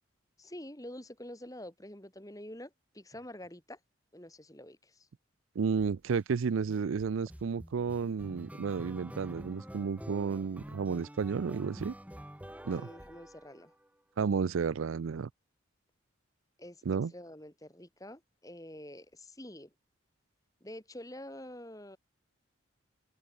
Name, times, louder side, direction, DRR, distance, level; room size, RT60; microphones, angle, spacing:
voice 1, 0.4-3.8 4.1-5.1 12.7-13.7 16.6-19.7 20.6-22.0, left 1 dB, 15° left, 2.8 m, -47 dB
voice 2, 5.6-11.9 12.6-12.9 14.2-15.3 16.9-17.1, right 5 dB, 80° right, 0.4 m, -32 dB
sound 1, 5.8-6.2 6.7-13.9, equal, 5° right, 2.6 m, -47 dB
open air
head